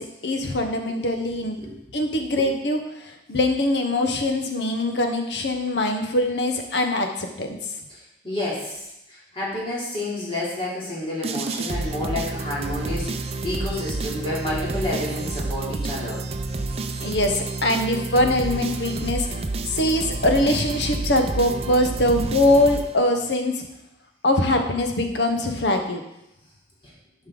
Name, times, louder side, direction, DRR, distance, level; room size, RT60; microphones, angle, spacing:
voice 1, 0.0-1.6 1.9-2.8 3.3-7.6 17.0-19.3 19.6-23.6 24.2-26.0, left 1 dB, 80° left, 4 dB, 1.1 m, -22 dB
voice 2, 1.3-1.7 2.4-2.5 8.2-8.8 9.1-16.2, left 1 dB, 30° left, -7 dB, 3.1 m, -30 dB
sound 1, 11.2-23.3, right 3 dB, 35° right, 0.5 m, -30 dB
10.5 x 5.5 x 3.9 m, 0.87 s
head